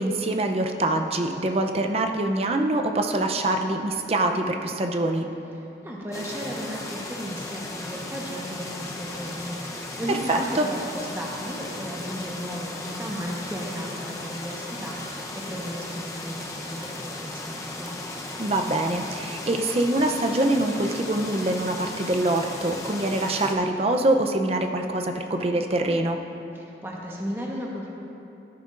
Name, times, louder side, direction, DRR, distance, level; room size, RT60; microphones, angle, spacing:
voice 1, 0.0-5.3 10.1-10.7 18.4-26.2, right 1 dB, 35° right, 4 dB, 0.6 m, -24 dB
voice 2, 5.6-17.9 26.5-27.9, equal, 15° right, -3 dB, 1.1 m, -35 dB
sound 1, 6.1-23.5, left 2 dB, 20° left, 0.8 m, -36 dB
16.5 x 9.8 x 2.5 m, 2.8 s
head